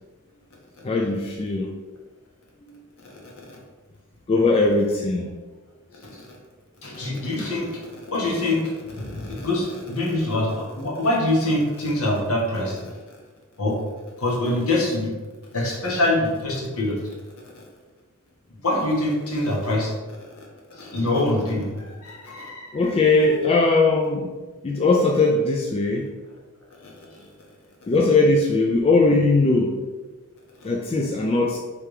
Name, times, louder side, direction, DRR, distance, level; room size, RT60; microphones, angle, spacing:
voice 1, 0.8-1.7 2.7-2.8 4.3-5.3 22.7-24.3 24.6-26.1 27.9-29.8 30.6-31.6, left 3 dB, 25° left, -1 dB, 0.3 m, -20 dB
voice 2, 6.8-12.9 13.6-13.8 14.2-15.1 15.5-17.0 18.6-20.0 20.7-23.0, left 1 dB, 70° left, -3 dB, 1.4 m, -25 dB
3.4 x 3.3 x 4.8 m, 1.3 s
head